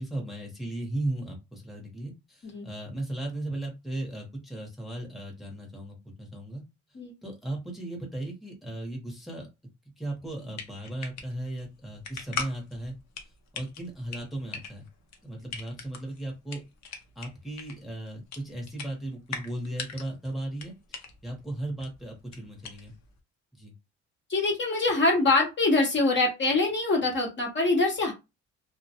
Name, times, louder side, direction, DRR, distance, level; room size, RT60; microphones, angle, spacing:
voice 1, 0.0-6.6 7.2-9.5 10.0-12.9 13.5-14.9 15.2-16.6 17.2-20.7 21.2-22.9 23.5-23.7, right 1 dB, ahead, -1 dB, 0.8 m, -36 dB
sound 1, 10.2-23.2, left 5 dB, 65° left, 0.7 m, -42 dB
voice 2, 24.3-28.1, left 2 dB, 40° left, 0 dB, 0.8 m, -24 dB
2.2 x 2.1 x 2.7 m, 0.25 s
cardioid pair, 90°, 30 cm